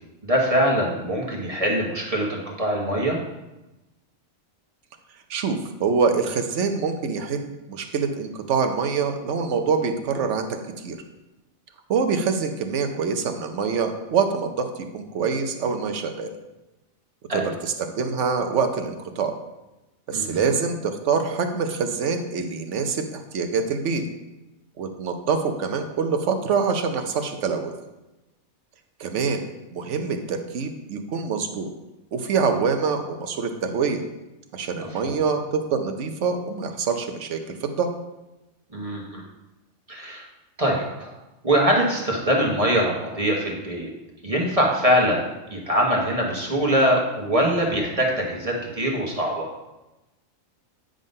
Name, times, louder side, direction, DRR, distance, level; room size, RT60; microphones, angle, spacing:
voice 1, 0.2-3.2 17.3-17.5 20.1-20.5 34.8-35.2 38.7-39.2 39.9-40.2 40.6-41.1 41.4-43.9 44.2-49.5, equal, 25° right, -2 dB, 1.2 m, -23 dB
voice 2, 5.3-10.5 10.8-11.0 11.9-14.7 14.9-16.3 17.3-19.3 20.1-24.0 24.8-27.7 29.0-29.4 29.7-31.7 32.1-34.0 34.5-37.9, right 5 dB, 60° right, 6 dB, 1.0 m, -25 dB
9.1 x 3.8 x 5.3 m, 1.0 s
omnidirectional pair, 1.4 m